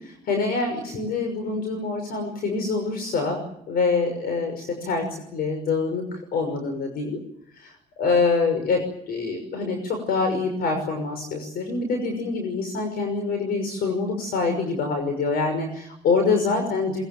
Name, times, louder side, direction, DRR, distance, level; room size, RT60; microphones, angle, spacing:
voice 1, 0.0-7.2 7.5-17.0, left 4 dB, 65° left, 5 dB, 6.1 m, -25 dB
23.0 x 22.0 x 9.3 m, 0.74 s
cardioid pair, 110°, 17 cm